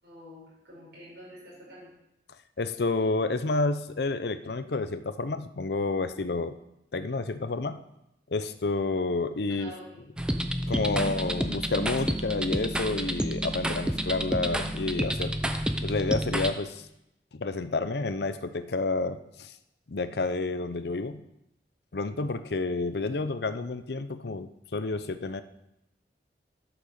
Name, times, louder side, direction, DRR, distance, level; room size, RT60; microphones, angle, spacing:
voice 1, 0.0-1.9 9.6-9.8 11.0-11.1, equal, 65° right, -7 dB, 5.0 m, -46 dB
voice 2, 2.6-6.6 6.9-7.8 8.3-9.7 10.7-15.4 15.8-16.8 17.3-19.5 19.9-21.2 21.9-25.4, left 3 dB, 65° left, 12 dB, 0.6 m, -30 dB
sound 1, 10.2-16.5, equal, 5° right, 0.6 m, -30 dB
11.5 x 6.0 x 6.7 m, 0.84 s
head